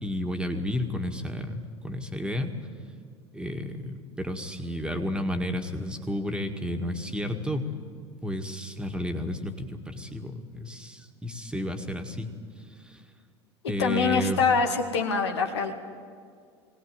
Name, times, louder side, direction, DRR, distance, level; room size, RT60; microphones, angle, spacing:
voice 1, 0.0-2.5 3.3-7.7 8.2-13.0 13.7-14.4, left 1 dB, 5° right, 5 dB, 1.9 m, -32 dB
voice 2, 13.8-15.7, left 5 dB, 70° left, 4 dB, 2.1 m, -24 dB
21.0 x 18.0 x 9.3 m, 2.2 s
figure-of-eight pair, 75°, 15 cm